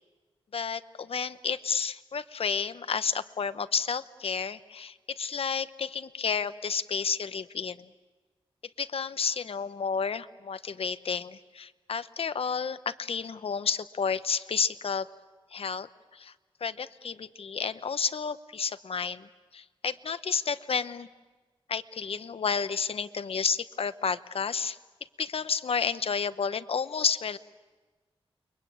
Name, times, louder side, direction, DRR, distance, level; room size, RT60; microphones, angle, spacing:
voice 1, 0.5-7.9 8.8-15.1 15.5-15.9 16.1-16.3 16.6-19.3 19.5-21.1 21.7-24.8 25.2-27.4, left 6 dB, 75° left, 13 dB, 0.9 m, -31 dB
29.5 x 23.0 x 8.7 m, 1.3 s
wide cardioid pair, 90°, 10 cm